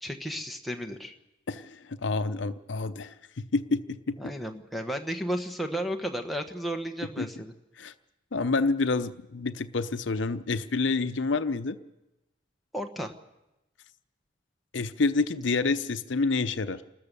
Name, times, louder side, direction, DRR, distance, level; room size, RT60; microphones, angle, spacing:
voice 1, 0.0-1.1 4.2-7.5 12.7-13.1, equal, ahead, 2 dB, 1.2 m, -33 dB
voice 2, 1.5-4.3 7.2-7.3 7.8-7.9 8.3-11.8 14.7-16.8, left 3 dB, 75° left, 11 dB, 0.7 m, -28 dB
29.0 x 13.5 x 6.8 m, 0.96 s
head